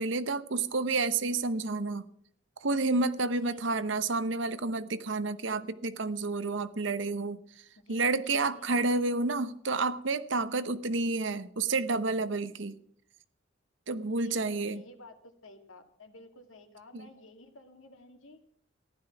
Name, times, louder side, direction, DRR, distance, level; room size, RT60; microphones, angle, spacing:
voice 1, 0.0-2.0 2.6-7.4 7.9-12.8 13.9-14.8 16.9-17.1, right 3 dB, 70° right, 13 dB, 0.9 m, -30 dB
voice 2, 3.3-3.8 7.8-8.7 13.9-18.4, left 1 dB, 90° left, 6 dB, 2.1 m, -52 dB
15.0 x 11.0 x 5.8 m, 0.68 s
head